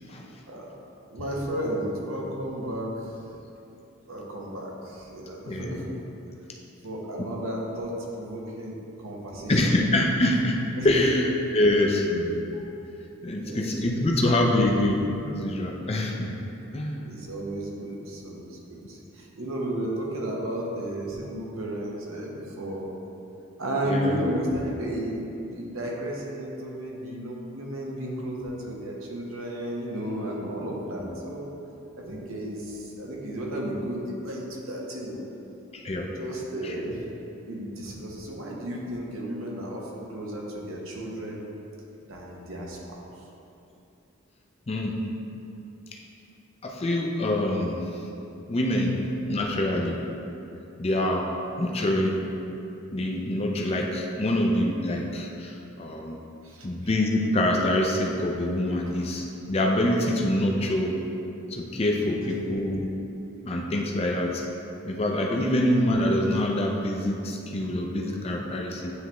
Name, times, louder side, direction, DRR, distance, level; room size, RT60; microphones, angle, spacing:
voice 1, 1.1-3.2 4.1-5.9 6.8-9.6 10.8-11.1 12.5-12.6 13.3-14.1 17.0-22.9 23.6-31.5 32.0-35.2 35.9-37.0 37.4-41.4 42.1-43.0 56.4-56.7 58.9-59.0 60.2-60.3 65.3-65.4, right 1 dB, 80° right, -3 dB, 1.1 m, -33 dB
voice 2, 5.5-5.9 9.5-12.4 13.2-16.3 16.7-17.1 23.8-24.2 31.0-31.1 32.1-32.2 35.7-36.1 36.6-36.7 44.7-45.0 46.6-47.9 48.5-50.0 50.8-52.3 52.9-56.2 56.6-61.0 61.5-62.9 63.4-64.4 64.8-68.9, left 1 dB, 30° left, 0 dB, 0.5 m, -25 dB
9.5 x 3.5 x 3.0 m, 2.8 s
head